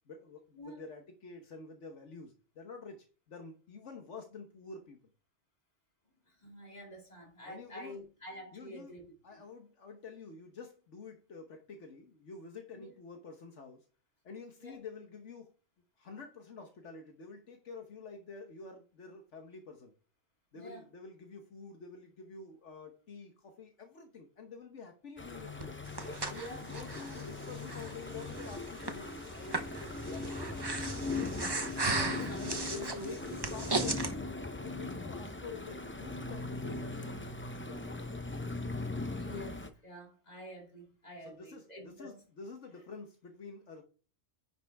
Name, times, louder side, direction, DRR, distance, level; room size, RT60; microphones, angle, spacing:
voice 1, 0.1-5.0 7.5-8.0 8.5-8.9 9.2-13.9 14.2-15.5 16.0-19.9 20.5-25.8 26.3-30.6 32.0-32.3 32.6-34.0 34.5-38.4 41.2-43.8, left 4 dB, 75° left, 1.5 m, -48 dB
voice 2, 6.3-9.1 12.7-12.9 14.6-14.8 20.5-20.9 26.3-26.7 30.2-30.3 31.8-33.4 33.8-33.9 39.2-42.2, equal, 35° left, 2.7 m, -47 dB
sound 1, 25.2-39.7, left 3 dB, 15° left, 0.5 m, -40 dB
Breathing, 25.6-34.1, right 3 dB, 25° right, 0.8 m, -37 dB
10.0 x 5.9 x 3.4 m
omnidirectional pair, 1.2 m